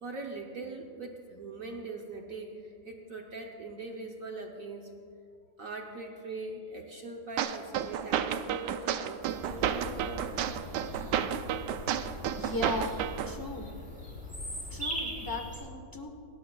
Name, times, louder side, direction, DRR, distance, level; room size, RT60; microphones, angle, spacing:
voice 1, 0.0-4.9 5.6-10.4, right 3 dB, 55° right, 2 dB, 1.1 m, -42 dB
sound 1, 7.4-13.4, right 9 dB, 75° right, 1.1 m, -32 dB
Bird vocalization bird call bird song, 9.3-15.6, left 1 dB, 5° right, 3.7 m, -41 dB
voice 2, 12.3-12.9 13.3-13.7 14.7-16.1, left 2 dB, 20° left, 3 dB, 0.6 m, -37 dB
28.0 x 13.0 x 2.3 m, 2.5 s
omnidirectional pair, 2.1 m